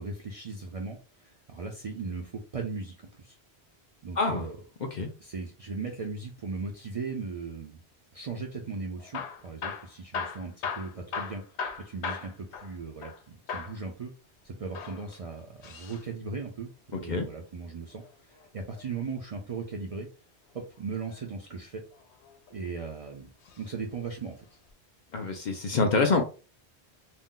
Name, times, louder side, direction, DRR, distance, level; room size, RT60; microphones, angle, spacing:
voice 1, 0.0-3.4 4.0-4.6 5.2-7.8 8.1-14.1 14.4-20.1 20.5-21.8 22.5-23.3 23.6-24.5, right 4 dB, 50° right, 1 dB, 0.4 m, -38 dB
Hammer / Drill, 9.0-13.2 13.5-13.8 14.6-16.0 17.8-19.0 20.7-21.2 21.9-22.7 23.4-23.7 24.0-24.1 24.7-24.8, left 6 dB, 90° left, 0.9 m, -38 dB
voice 2, 25.1-26.2, left 4 dB, 55° left, 3 dB, 0.5 m, -26 dB
2.6 x 2.1 x 3.7 m, 0.34 s
omnidirectional pair, 1.1 m